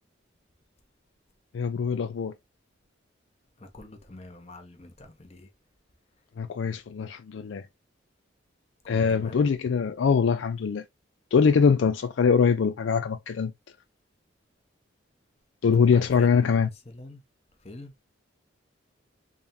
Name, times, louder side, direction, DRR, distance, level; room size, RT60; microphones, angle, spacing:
voice 1, 1.5-2.3 6.4-7.6 8.9-10.8 11.3-13.5 15.6-16.7, left 6 dB, 70° left, 0.4 m, -23 dB
voice 2, 3.6-5.5 8.9-9.4 15.9-17.2 17.6-17.9, left 1 dB, 30° left, 0.9 m, -45 dB
3.6 x 3.5 x 2.7 m
head